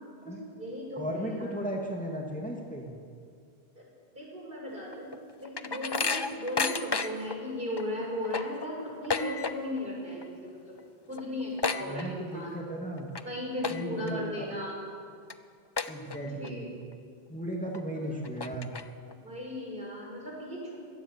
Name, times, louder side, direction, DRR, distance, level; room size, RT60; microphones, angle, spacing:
voice 1, 0.3-1.5 3.8-3.9 4.1-10.8 11.1-12.6 13.2-14.8 16.2-16.7 17.9-18.2 19.1-20.8, left 1 dB, 55° right, -2 dB, 6.2 m, -37 dB
voice 2, 1.0-2.9 11.8-13.1 13.7-14.5 15.9-16.7 17.3-18.7, right 1 dB, 5° left, -1 dB, 2.3 m, -35 dB
sound 1, 4.9-7.4 7.8-7.9 8.1-9.9 10.1-10.5 10.8-10.9 11.1-12.5 13.0-13.2 13.6-14.1 14.6-14.7 15.3-15.4 15.8-16.5 16.9-17.0 17.7-17.8 18.2-19.1, left 4 dB, 25° left, 0.6 m, -32 dB
22.0 x 17.5 x 7.6 m, 2.2 s
omnidirectional pair, 1.1 m